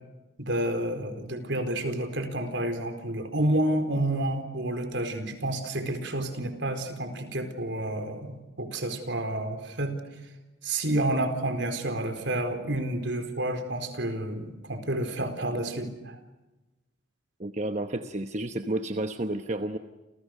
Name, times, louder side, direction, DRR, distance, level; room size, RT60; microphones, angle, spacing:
voice 1, 0.4-9.9 10.6-16.2, right 1 dB, 70° right, 7 dB, 4.4 m, -30 dB
voice 2, 17.4-19.8, right 1 dB, 40° right, 7 dB, 1.1 m, -31 dB
29.5 x 29.5 x 6.6 m, 1.1 s
head